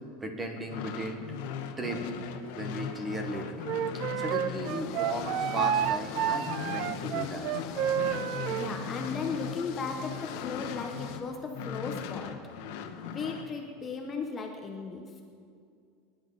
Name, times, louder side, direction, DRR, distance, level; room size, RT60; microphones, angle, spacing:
voice 1, 0.2-1.2 1.8-3.7 4.2-7.5 8.0-8.1, right 1 dB, 10° right, 3 dB, 1.4 m, -36 dB
sound 1, 0.6-11.2 11.5-13.5, left 7 dB, 65° left, 1.2 m, -39 dB
Wind instrument woodwind instrument, 3.6-8.7, right 10 dB, 50° right, 0.4 m, -30 dB
sound 2, 4.6-11.2, left 7 dB, 50° left, 1.2 m, -43 dB
voice 2, 8.5-12.4 13.0-15.1, left 4 dB, 20° left, 2 dB, 1.0 m, -36 dB
22.5 x 11.0 x 4.0 m, 2.3 s
supercardioid pair, 165°, 0 cm